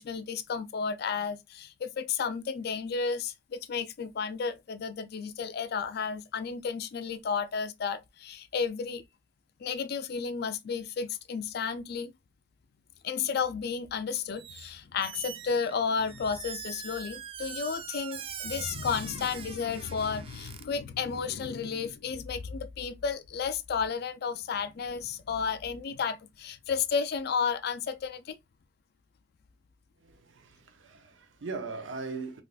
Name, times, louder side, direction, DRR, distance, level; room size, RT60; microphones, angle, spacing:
voice 1, 0.0-9.0 9.6-12.1 13.0-28.4, left 6 dB, 55° left, 0.4 m, -32 dB
Squeak, 14.4-14.7 15.0-20.6, right 7 dB, 30° right, 0.3 m, -42 dB
voice 2, 30.0-32.4, right 4 dB, 80° right, 0.6 m, -39 dB
3.4 x 2.4 x 2.3 m
head